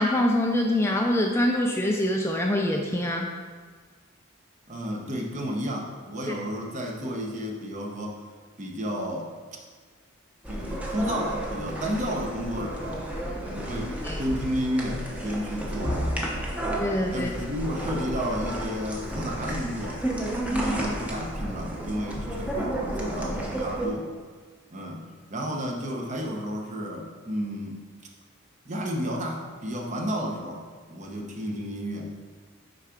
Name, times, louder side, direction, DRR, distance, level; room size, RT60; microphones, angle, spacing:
voice 1, 0.0-3.3 14.0-14.2 16.8-17.3, left 1 dB, 10° left, 1 dB, 0.4 m, -24 dB
voice 2, 4.7-8.2 8.6-9.3 10.5-13.1 13.5-16.5 17.1-20.0 20.5-24.1 24.7-27.8 28.6-32.3, equal, 35° right, 0 dB, 1.0 m, -32 dB
sound 1, 10.4-23.9, right 1 dB, 5° right, 0.8 m, -32 dB
6.4 x 4.7 x 5.0 m, 1.6 s
head